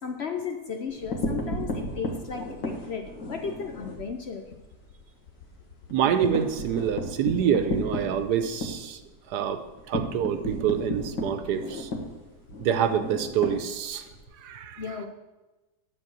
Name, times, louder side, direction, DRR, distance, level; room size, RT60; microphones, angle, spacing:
voice 1, 0.0-4.5 14.8-15.1, left 6 dB, 60° left, 5 dB, 0.6 m, -35 dB
sound 1, 0.9-4.1 4.5-4.6 4.9-5.0 5.4-14.2, left 1 dB, 80° left, 2.2 m, -33 dB
voice 2, 5.9-9.0 9.3-9.6 9.9-11.9 12.6-14.0 14.4-14.8, right 9 dB, 75° right, 9 dB, 1.3 m, -26 dB
11.0 x 4.3 x 7.5 m, 1.1 s
omnidirectional pair, 1.8 m